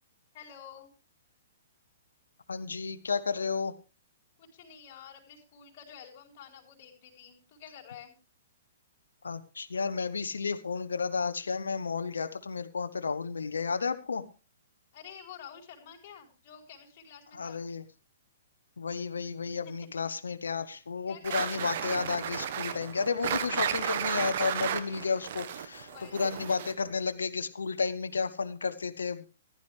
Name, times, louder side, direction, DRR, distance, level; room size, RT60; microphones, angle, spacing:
voice 1, 0.3-0.9 4.4-8.1 14.9-17.6 21.1-21.8 25.7-26.6, left 8 dB, 40° left, -2 dB, 4.4 m, -50 dB
voice 2, 2.5-3.7 9.2-14.2 17.3-17.8 18.8-25.9 26.1-29.3, left 5 dB, 80° left, 11 dB, 0.9 m, -32 dB
sound 1, 21.2-26.9, right 9 dB, 55° right, 1.2 m, -33 dB
15.0 x 11.5 x 3.3 m, 0.31 s
hypercardioid pair, 125°, 0 cm